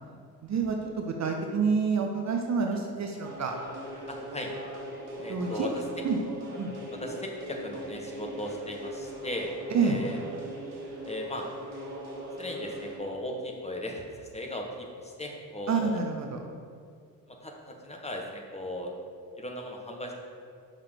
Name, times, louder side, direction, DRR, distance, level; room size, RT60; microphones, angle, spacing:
voice 1, 0.4-3.5 5.3-5.7 6.0-6.2 6.5-6.7 9.7-10.0 15.7-16.4, right 5 dB, 35° right, 3 dB, 0.9 m, -28 dB
sound 1, 3.2-13.0, equal, 55° right, 1.8 m, -40 dB
voice 2, 4.1-4.5 5.2-5.7 7.0-9.5 9.8-10.2 11.0-11.5 12.3-16.0 17.3-18.9 19.4-20.1, left 1 dB, 15° left, 1 dB, 1.3 m, -37 dB
6.5 x 5.7 x 5.0 m, 2.2 s
figure-of-eight pair, 50°, 46 cm